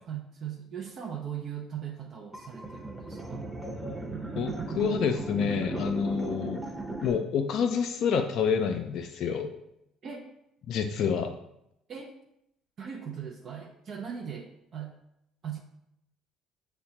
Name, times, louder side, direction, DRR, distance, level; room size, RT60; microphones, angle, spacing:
voice 1, 0.1-3.5 10.0-10.3 11.9-12.1 12.8-15.0 15.4-15.6, right 8 dB, 55° right, 1 dB, 0.5 m, -39 dB
sound 1, 2.3-7.1, right 2 dB, 10° right, 0.8 m, -36 dB
voice 2, 4.3-6.6 7.0-9.5 10.7-11.3, left 6 dB, 65° left, 5 dB, 0.3 m, -28 dB
6.2 x 2.2 x 2.8 m, 0.80 s
hypercardioid pair, 60°, 0 cm